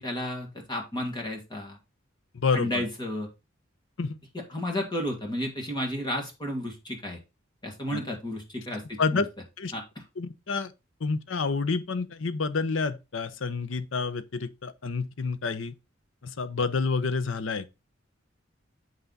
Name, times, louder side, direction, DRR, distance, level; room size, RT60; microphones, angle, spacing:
voice 1, 0.0-1.8 2.5-3.3 4.3-7.2 7.6-9.2 9.7-9.8, left 1 dB, 20° left, 2.0 m, -32 dB
voice 2, 2.3-2.9 4.0-4.2 7.9-8.0 9.0-9.3 9.6-9.7 10.2-10.7 11.0-15.7 16.2-17.7, left 4 dB, 70° left, 0.7 m, -29 dB
7.7 x 5.8 x 4.0 m
head